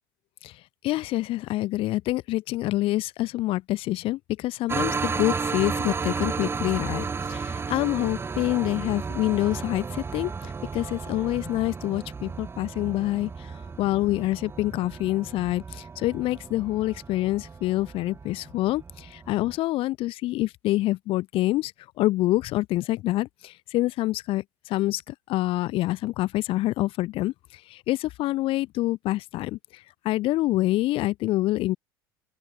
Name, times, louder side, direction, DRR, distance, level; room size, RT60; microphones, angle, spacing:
voice 1, 0.8-21.7 22.0-31.8, left 17 dB, 55° left, 2.4 m, -27 dB
sound 1, 4.7-19.6, right 5 dB, 20° right, 1.0 m, -33 dB
open air
figure-of-eight pair, 70°, 11 cm